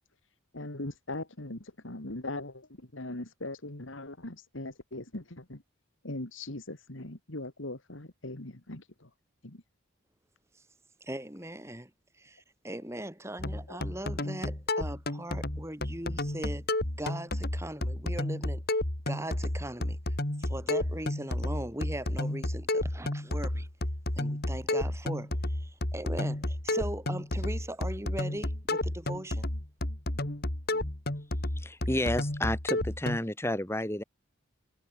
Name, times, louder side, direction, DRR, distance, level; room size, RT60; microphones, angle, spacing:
voice 1, 0.5-2.7 2.9-5.6 6.0-8.8 9.4-9.6 13.7-13.8, left 2 dB, 75° left, 2.6 m, -40 dB
voice 2, 11.0-11.9 12.2-16.7 17.0-18.6 19.1-23.7 24.2-29.5, right 1 dB, 15° right, 3.2 m, -39 dB
sound 1, 13.4-33.2, left 1 dB, 50° left, 2.3 m, -32 dB
voice 3, 31.6-34.0, left 1 dB, 10° left, 2.4 m, -31 dB
head